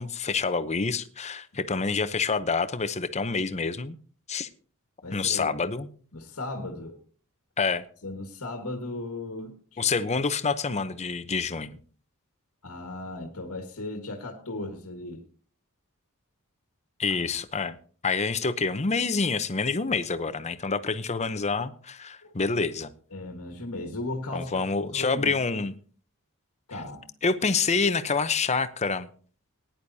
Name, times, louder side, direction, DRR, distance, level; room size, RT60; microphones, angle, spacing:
voice 1, 0.0-4.0 4.3-4.5 5.1-5.9 7.6-7.8 9.8-11.8 17.0-17.8 18.0-22.9 24.3-25.7 27.2-29.1, left 4 dB, 30° left, 12 dB, 0.7 m, -27 dB
voice 2, 5.0-5.5 6.1-7.0 8.0-9.8 12.6-15.3 17.1-17.2 22.2-22.3 23.1-24.6 24.9-25.3 26.7-27.0, left 2 dB, 80° left, 3 dB, 1.6 m, -36 dB
19.0 x 10.5 x 2.7 m, 0.43 s
head